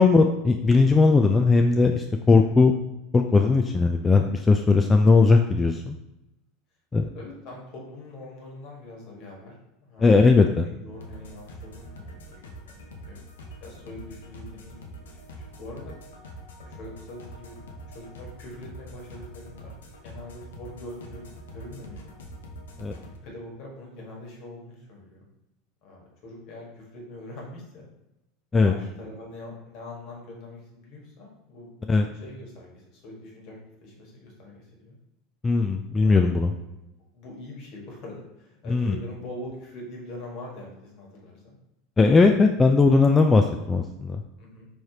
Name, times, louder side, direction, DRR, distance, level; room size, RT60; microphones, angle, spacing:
voice 1, 0.0-2.7 3.1-6.0 6.9-7.1 10.0-10.7 22.8-22.9 28.5-28.7 31.9-32.1 35.4-36.5 38.7-39.0 42.0-44.2, left 4 dB, 20° left, 3 dB, 0.3 m, -19 dB
voice 2, 7.1-9.6 9.8-10.3 10.6-13.2 13.6-15.9 16.6-17.6 17.9-19.7 20.0-22.1 22.9-25.2 25.8-27.9 28.5-31.7 32.2-35.0 35.9-36.2 37.1-41.6 44.4-44.7, left 1 dB, 60° left, -2 dB, 1.5 m, -43 dB
sound 1, 10.9-23.2, equal, 85° left, 0.6 m, -44 dB
4.8 x 3.1 x 2.8 m, 0.90 s
hypercardioid pair, 90°, 0 cm